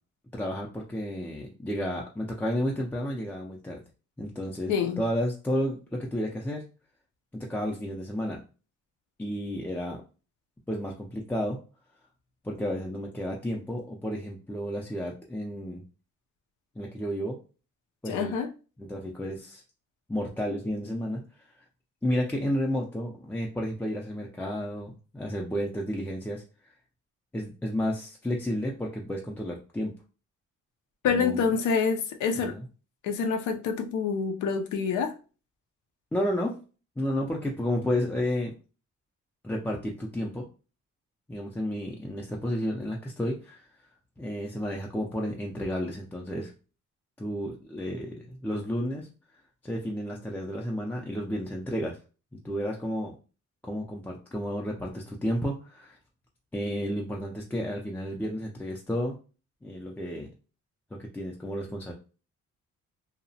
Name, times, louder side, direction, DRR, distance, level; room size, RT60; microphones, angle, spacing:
voice 1, 0.3-3.8 4.2-6.6 7.3-8.4 9.2-10.0 10.7-11.6 12.4-15.8 16.8-17.4 18.0-18.3 18.8-19.6 20.1-21.2 22.0-26.4 27.3-29.9 31.1-31.4 32.5-32.6 36.1-36.6 37.0-38.5 39.4-40.4 41.3-43.7 44.2-46.5 47.2-49.1 49.6-52.0 52.4-53.1 53.6-56.0 56.5-59.2 59.6-60.3 60.9-61.9, equal, 5° left, 0.4 m, -31 dB
voice 2, 4.7-5.0 18.1-18.5 31.0-32.6 33.0-35.1, left 6 dB, 90° left, 0.5 m, -27 dB
2.8 x 2.0 x 2.6 m
cardioid pair, 120°, 30 cm